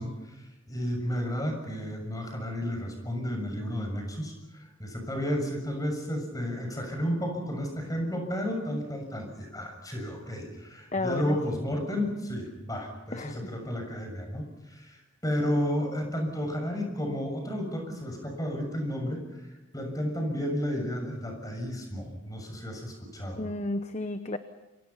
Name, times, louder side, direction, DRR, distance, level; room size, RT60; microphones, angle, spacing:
voice 1, 0.0-23.5, equal, 15° left, 3 dB, 6.8 m, -32 dB
voice 2, 10.9-11.4 13.1-13.4 23.4-24.4, left 2 dB, 35° left, 9 dB, 0.9 m, -32 dB
29.0 x 24.5 x 5.7 m, 1.1 s
head